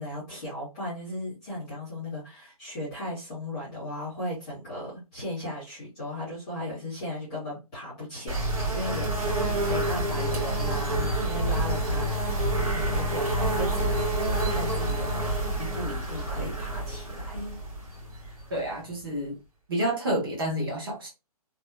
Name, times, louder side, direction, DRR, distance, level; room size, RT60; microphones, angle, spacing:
voice 1, 0.0-9.1 9.6-14.0 14.4-17.6, left 1 dB, 5° left, 0.6 m, -36 dB
sound 1, 8.3-18.9, right 1 dB, 65° right, 1.4 m, -28 dB
voice 2, 18.5-19.4 19.7-21.1, right 1 dB, 35° right, 1.1 m, -29 dB
2.8 x 2.1 x 2.2 m
hypercardioid pair, 180°, 20 cm